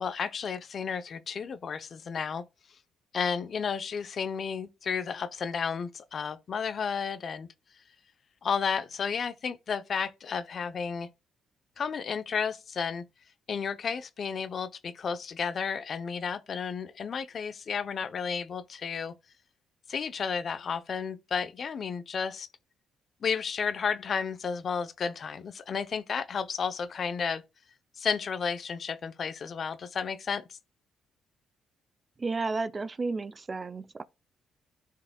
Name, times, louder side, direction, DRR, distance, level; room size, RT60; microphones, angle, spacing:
voice 1, 0.0-2.4 3.1-7.5 8.4-11.1 11.8-13.0 13.5-19.1 19.9-22.5 23.2-27.4 28.0-30.6, left 6 dB, 50° left, 0.7 m, -32 dB
voice 2, 32.2-34.0, right 3 dB, 30° right, 0.5 m, -32 dB
13.0 x 4.7 x 2.3 m
cardioid pair, 90°, 0 cm